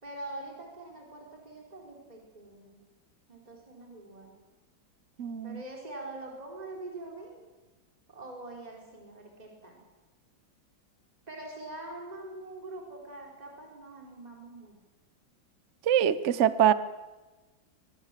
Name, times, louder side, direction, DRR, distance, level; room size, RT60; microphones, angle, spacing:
voice 1, 0.0-2.8 3.3-4.4 5.4-7.5 8.1-9.8 11.3-14.7, right 2 dB, 20° right, 0 dB, 4.0 m, -44 dB
voice 2, 5.2-5.6 15.9-16.7, right 10 dB, 55° right, 14 dB, 0.8 m, -24 dB
23.0 x 20.0 x 7.4 m, 1.2 s
omnidirectional pair, 2.2 m